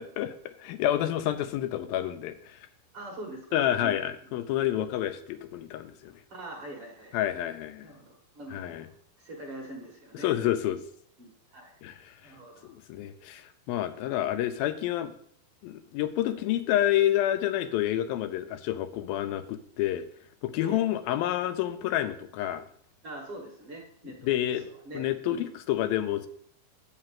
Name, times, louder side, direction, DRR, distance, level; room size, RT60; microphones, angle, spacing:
voice 1, 0.0-2.7 3.5-6.1 7.1-7.9 8.5-8.9 10.2-10.8 11.8-12.3 12.6-15.1 15.6-20.0 20.4-22.6 24.2-24.7 24.9-26.3, left 12 dB, 80° left, 8 dB, 2.4 m, -29 dB
voice 2, 2.9-4.0 6.3-7.2 7.8-8.9 9.2-10.3 11.2-11.8 12.2-12.7 20.6-20.9 23.0-25.0 25.3-25.6, right 1 dB, 45° right, 0 dB, 2.1 m, -43 dB
7.7 x 5.9 x 7.5 m, 0.63 s
omnidirectional pair, 4.2 m